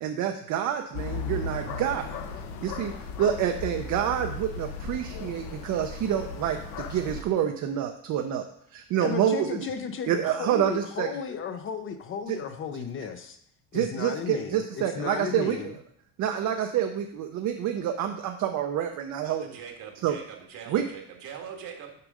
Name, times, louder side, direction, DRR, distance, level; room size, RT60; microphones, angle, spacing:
voice 1, 0.0-2.1 2.6-2.9 3.2-8.4 8.7-9.5 10.1-11.1 12.3-12.4 13.7-15.6 16.2-19.5 20.0-20.1 20.7-20.8, right 10 dB, 55° right, 4 dB, 0.7 m, -27 dB
sound 1, 0.9-7.2, left 4 dB, 80° left, 1.0 m, -36 dB
voice 2, 9.0-13.4 13.7-15.7, left 6 dB, 35° left, 8 dB, 0.6 m, -34 dB
voice 3, 19.2-22.1, right 7 dB, 75° right, 2 dB, 1.7 m, -42 dB
6.8 x 5.2 x 4.9 m, 0.68 s
cardioid pair, 135°, 35 cm